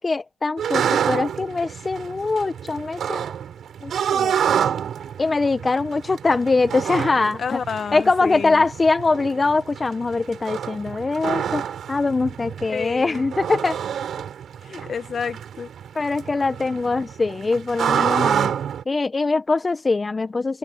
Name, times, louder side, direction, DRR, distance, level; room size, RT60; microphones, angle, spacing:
voice 1, 0.0-3.3 3.8-4.4 5.2-7.6 7.9-11.6 11.9-13.8 15.9-18.5 18.9-20.6, left 3 dB, 25° left, 1.4 m, -22 dB
sound 1, 0.6-18.8, right 8 dB, 55° right, 5.0 m, -28 dB
voice 2, 7.4-8.7 12.7-13.2 14.6-15.7, left 6 dB, 45° left, 1.8 m, -30 dB
open air
supercardioid pair, 70°, 0 cm